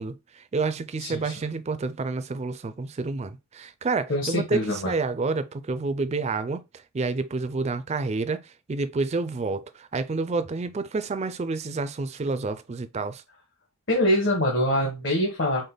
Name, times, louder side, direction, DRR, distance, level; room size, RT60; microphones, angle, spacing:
voice 1, 0.0-6.6 6.9-13.2, right 3 dB, 30° right, 0.3 m, -29 dB
voice 2, 1.0-1.3 4.1-4.9 13.9-15.7, left 1 dB, 55° left, 1.2 m, -24 dB
5.0 x 2.1 x 3.9 m
head